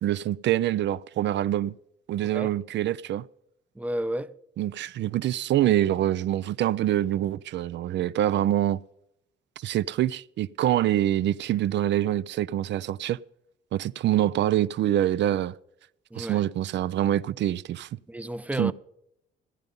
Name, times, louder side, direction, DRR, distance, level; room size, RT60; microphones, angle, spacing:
voice 1, 0.0-1.7 2.1-3.3 4.6-8.8 9.6-13.2 13.7-15.5 16.1-17.9 18.6-18.7, right 12 dB, 65° right, 0.4 m, -25 dB
voice 2, 3.8-4.3 16.1-16.4 18.1-18.7, right 1 dB, 5° right, 0.5 m, -31 dB
14.5 x 10.5 x 5.3 m
cardioid pair, 90°, 20 cm